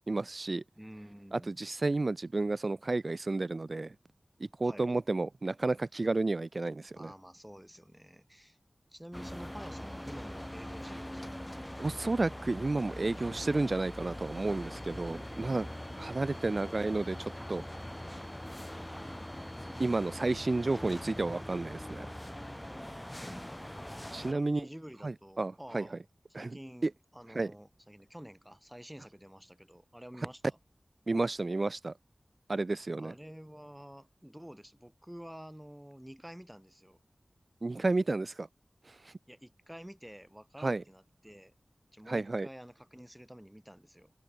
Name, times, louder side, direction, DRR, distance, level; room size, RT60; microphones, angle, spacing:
voice 1, 0.0-0.6 1.3-4.0 4.4-7.1 11.8-15.7 16.0-17.6 19.8-22.1 24.1-24.7 25.0-25.9 26.3-26.9 27.3-27.5 31.1-31.9 32.5-33.1 37.6-38.5 38.9-39.1 40.6-40.8 42.1-42.5, right 2 dB, 50° right, 0.3 m, -32 dB
voice 2, 0.8-1.6 4.6-4.9 6.9-8.6 8.9-11.3 24.2-26.0 26.3-30.6 33.0-37.0 39.3-41.5 41.9-44.1, equal, 5° right, 3.2 m, -49 dB
sound 1, 9.1-24.3, left 1 dB, 10° left, 2.8 m, -42 dB
open air
wide cardioid pair, 75°, 0 cm